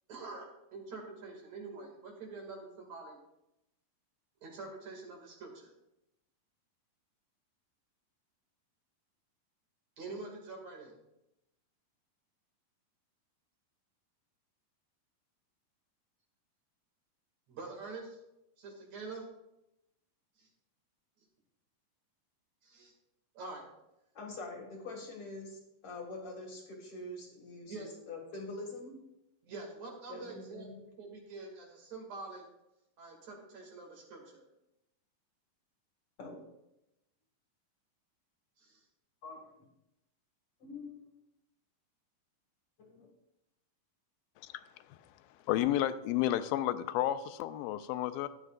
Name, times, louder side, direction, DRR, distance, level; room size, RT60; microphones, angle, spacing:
voice 1, 0.1-3.2 4.4-5.7 10.0-10.9 17.5-18.2 18.6-19.3 20.4-20.5 22.6-22.9 23.3-23.7 27.7-27.9 29.5-32.4 33.0-34.5 38.6-38.8, right 3 dB, 55° right, 3.2 m, -46 dB
voice 2, 24.1-29.0 30.1-30.8 36.2-36.4 39.2-39.5 40.6-41.2 42.8-43.1, left 2 dB, 50° left, 2.2 m, -45 dB
voice 3, 45.5-48.3, left 13 dB, 90° left, 2.3 m, -31 dB
14.5 x 10.5 x 2.5 m
omnidirectional pair, 4.0 m